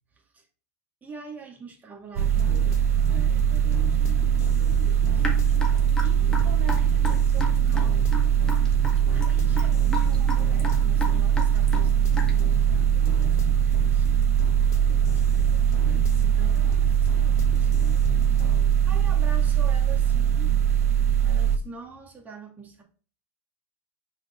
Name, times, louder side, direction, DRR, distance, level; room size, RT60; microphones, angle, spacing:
voice 1, 0.1-0.5 1.0-2.8 3.1-5.3 6.0-8.0 8.4-14.1 15.1-18.1 18.3-18.6 18.9-20.5 21.2-22.8, right 4 dB, 20° right, 2.2 m, -44 dB
sound 1, 2.2-18.7, left 12 dB, 40° left, 0.5 m, -36 dB
sound 2, 2.2-21.6, right 9 dB, 85° right, 0.5 m, -21 dB
Raindrop / Drip, 5.2-12.5, left 2 dB, 10° left, 1.7 m, -34 dB
5.2 x 4.4 x 4.4 m
hypercardioid pair, 105°, 8 cm